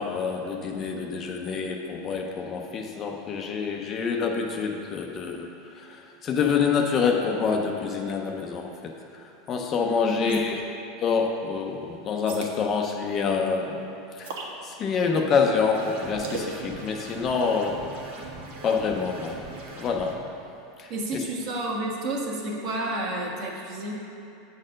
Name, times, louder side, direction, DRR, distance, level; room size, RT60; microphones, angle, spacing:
voice 1, 0.0-10.6 11.0-13.8 14.2-14.4 14.6-17.8 18.6-19.4 19.8-20.2 20.8-21.2, left 5 dB, 25° left, 2 dB, 0.5 m, -27 dB
voice 2, 10.0-10.4 20.9-23.9, right 1 dB, 45° right, -1 dB, 1.3 m, -30 dB
sound 1, 10.3-10.7 12.3-12.6 14.2-14.5 16.2-16.5, right 4 dB, 80° right, 1.2 m, -36 dB
sound 2, 15.7-20.1, right 3 dB, 65° right, 1.4 m, -41 dB
8.5 x 4.4 x 6.3 m, 2.8 s
supercardioid pair, 165°, 0 cm